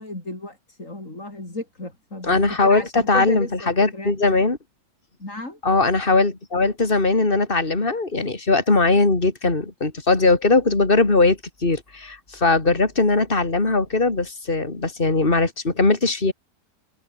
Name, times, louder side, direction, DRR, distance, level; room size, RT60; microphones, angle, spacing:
voice 1, 0.0-2.4 2.6-4.1 5.2-5.6, left 2 dB, 45° left, 6.8 m, -34 dB
voice 2, 2.2-4.6 5.6-16.3, left 3 dB, 30° left, 3.5 m, -20 dB
omnidirectional pair, 1.9 m